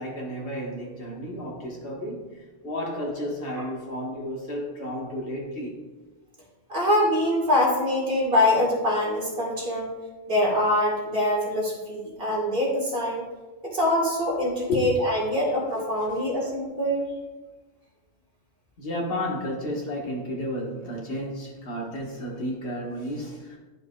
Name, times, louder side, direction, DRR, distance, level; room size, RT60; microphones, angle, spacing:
voice 1, 0.0-5.8 14.7-15.1 18.8-23.6, equal, 50° left, -2 dB, 1.6 m, -32 dB
voice 2, 6.7-9.9 10.3-13.2 13.7-17.1, left 1 dB, 50° right, -4 dB, 2.2 m, -24 dB
10.5 x 5.3 x 2.4 m, 1.2 s
omnidirectional pair, 1.3 m